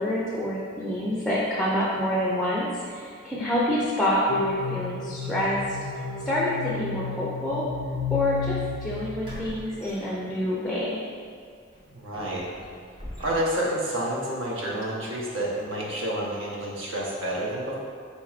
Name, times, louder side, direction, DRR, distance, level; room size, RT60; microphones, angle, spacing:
voice 1, 0.0-5.6 6.3-7.6 8.1-11.0, left 1 dB, 5° left, -6 dB, 0.5 m, -27 dB
sound 1, 4.3-9.6, left 4 dB, 75° left, 0.3 m, -32 dB
sound 2, 8.3-8.4 9.2-10.7 11.1-11.3 11.7-13.8, equal, 25° right, 0.8 m, -43 dB
voice 2, 11.9-12.4 13.2-17.8, right 1 dB, 75° right, -5 dB, 0.9 m, -29 dB
4.5 x 4.2 x 2.4 m, 2.1 s
head